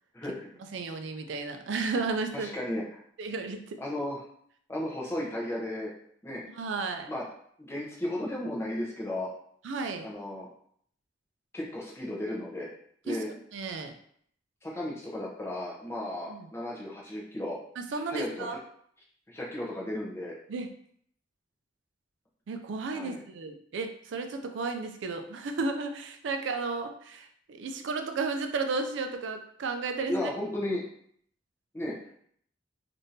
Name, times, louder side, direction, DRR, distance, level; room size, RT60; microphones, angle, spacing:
voice 1, 0.1-0.5 2.3-3.0 3.8-4.3 4.7-5.9 6.2-6.4 7.1-7.2 7.6-9.3 10.0-10.5 11.5-12.7 13.0-13.3 14.6-17.6 18.1-18.6 19.3-20.3 22.9-23.2 30.1-30.8 31.7-31.9, left 1 dB, 15° left, -4 dB, 0.6 m, -34 dB
voice 2, 0.7-2.5 3.2-3.8 6.4-7.1 9.6-10.1 13.1-13.9 16.3-16.5 17.8-18.6 20.5-20.7 22.5-30.3, right 4 dB, 75° right, 6 dB, 0.4 m, -33 dB
3.5 x 2.5 x 2.7 m, 0.64 s
head